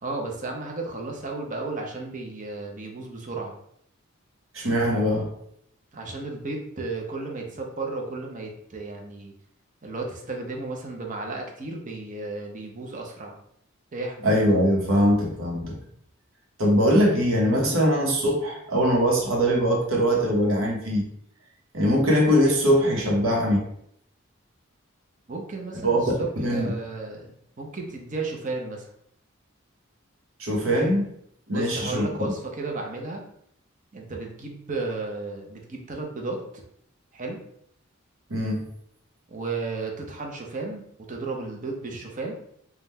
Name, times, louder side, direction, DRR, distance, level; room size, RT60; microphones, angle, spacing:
voice 1, 0.0-3.6 5.9-9.3 9.8-13.4 13.9-14.3 25.3-28.9 31.5-33.2 33.9-36.4 37.1-37.4 39.3-40.8 41.1-42.4, right 3 dB, 40° right, 1 dB, 0.7 m, -33 dB
voice 2, 4.5-5.3 14.2-15.8 16.6-21.1 21.7-23.7 25.8-26.0 26.4-26.7 30.4-31.0 31.5-32.1 38.3-38.7, equal, 85° right, 0 dB, 1.1 m, -22 dB
3.7 x 2.4 x 4.1 m, 0.70 s
head